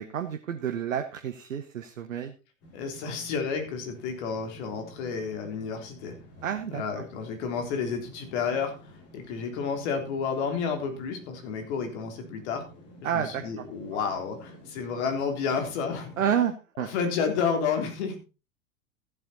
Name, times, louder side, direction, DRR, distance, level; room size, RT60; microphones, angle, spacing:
voice 1, 0.0-2.3 6.4-6.8 13.0-13.6 16.2-16.9, right 9 dB, 75° right, 7 dB, 1.2 m, -29 dB
sound 1, 2.6-16.4, right 1 dB, 35° left, 7.5 m, -51 dB
voice 2, 2.7-6.1 6.7-8.7 9.1-12.6 13.1-16.1 16.8-18.2, left 6 dB, 55° left, 5 dB, 3.7 m, -30 dB
15.0 x 7.8 x 4.1 m, 0.31 s
figure-of-eight pair, 90°, 40 cm